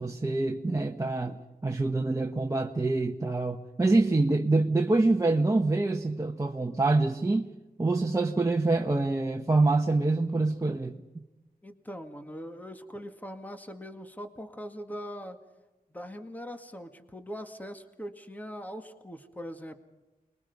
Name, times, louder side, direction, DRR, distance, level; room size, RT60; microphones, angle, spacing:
voice 1, 0.0-7.5 7.8-11.0, right 2 dB, 20° right, 1.3 m, -26 dB
voice 2, 11.6-15.4 15.9-19.7, equal, 10° left, 2.0 m, -41 dB
29.0 x 22.0 x 5.5 m
wide cardioid pair, 100°, 15 cm